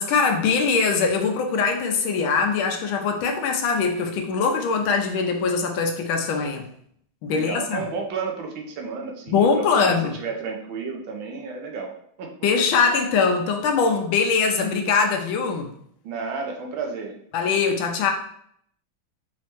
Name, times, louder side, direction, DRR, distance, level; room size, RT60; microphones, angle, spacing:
voice 1, 0.0-6.7 7.2-7.8 9.3-10.2 12.4-15.7 17.3-18.1, left 5 dB, 80° left, 4 dB, 1.4 m, -22 dB
voice 2, 7.3-9.9 10.2-11.9 12.2-12.3 16.0-17.1, right 4 dB, 75° right, 1 dB, 1.4 m, -32 dB
4.7 x 3.1 x 2.9 m, 0.67 s
omnidirectional pair, 2.3 m